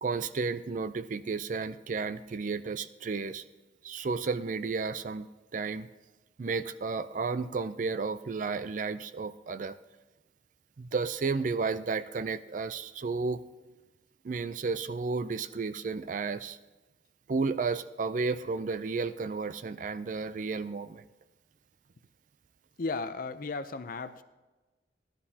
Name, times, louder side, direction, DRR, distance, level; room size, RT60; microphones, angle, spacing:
voice 1, 0.0-3.4 3.8-5.3 5.5-5.9 6.4-9.8 10.8-13.4 14.2-16.6 17.3-21.0, right 4 dB, 45° right, 13 dB, 0.4 m, -32 dB
voice 2, 22.8-24.2, left 3 dB, 50° left, 11 dB, 0.5 m, -35 dB
17.0 x 11.5 x 2.8 m, 1.2 s
head